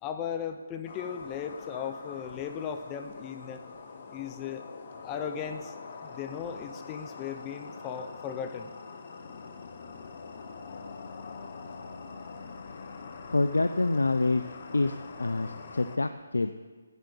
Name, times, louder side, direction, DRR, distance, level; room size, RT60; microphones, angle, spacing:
voice 1, 0.0-3.6 4.1-4.7 5.0-5.7 6.0-8.7, left 8 dB, 20° left, 7 dB, 0.6 m, -37 dB
sound 1, 0.9-16.0, left 4 dB, 40° left, 1.0 m, -44 dB
voice 2, 13.3-14.4 14.7-16.5, left 2 dB, 75° left, 9 dB, 0.5 m, -27 dB
8.1 x 7.9 x 8.9 m, 1.5 s
figure-of-eight pair, 150°, 0 cm